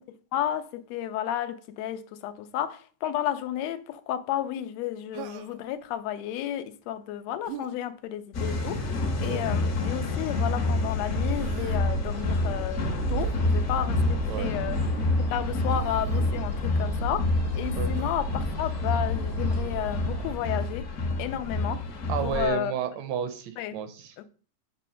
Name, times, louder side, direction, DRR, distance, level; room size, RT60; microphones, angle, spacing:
voice 1, 0.1-14.8 15.3-20.9 21.2-21.8 22.2-22.7 23.6-23.7 24.2-24.3, left 11 dB, 75° left, 1.7 m, -32 dB
Human voice, 5.1-5.7 7.4-7.7 9.2-9.6 11.2-11.8 13.2-13.4 14.3-14.6 15.7-16.3 17.9-18.2, right 10 dB, 90° right, 2.1 m, -42 dB
sound 1, 8.3-22.5, left 2 dB, 50° left, 1.2 m, -28 dB
sound 2, 11.1-20.3, right 2 dB, 35° right, 0.5 m, -34 dB
voice 2, 22.1-24.2, right 8 dB, 75° right, 1.9 m, -31 dB
8.4 x 3.3 x 6.3 m
omnidirectional pair, 3.3 m